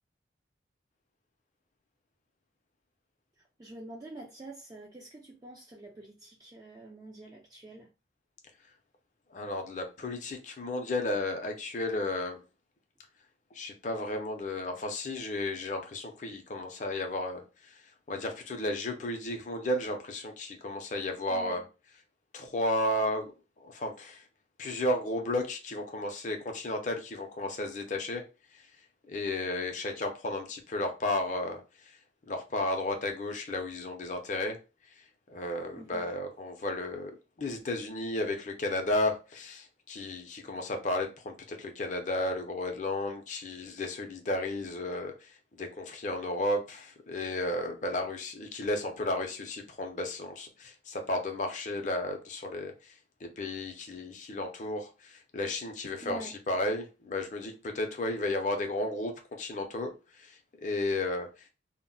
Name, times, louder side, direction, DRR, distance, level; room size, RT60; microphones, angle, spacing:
voice 1, 3.6-7.9 21.3-21.6 35.7-36.1 56.0-56.3, right 1 dB, 20° right, 0.3 m, -46 dB
voice 2, 9.3-12.4 13.5-17.4 18.1-21.6 22.3-23.3 23.6-24.2 24.6-28.2 28.5-28.6 29.1-31.6 32.3-34.6 35.3-37.1 37.4-52.9 53.2-61.3, left 1 dB, 40° left, 0.5 m, -33 dB
2.1 x 2.0 x 3.7 m
head